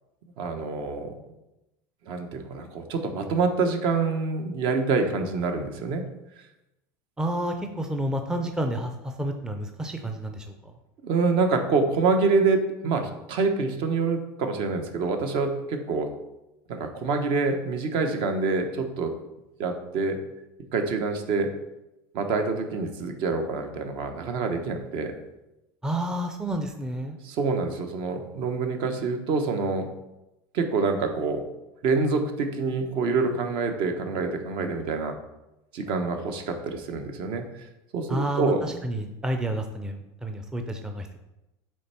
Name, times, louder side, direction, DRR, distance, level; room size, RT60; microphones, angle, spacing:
voice 1, 0.4-1.3 2.1-6.1 11.0-16.1 16.7-19.1 19.6-20.2 20.7-21.5 22.1-25.2 27.2-29.9 30.5-31.4 31.8-35.2 35.7-37.5 37.9-38.8, right 4 dB, 55° right, 6 dB, 0.9 m, -26 dB
voice 2, 7.2-10.7 25.8-27.2 38.1-41.2, right 1 dB, 5° right, 5 dB, 0.5 m, -30 dB
7.6 x 3.4 x 4.3 m, 0.94 s
supercardioid pair, 130°, 10 cm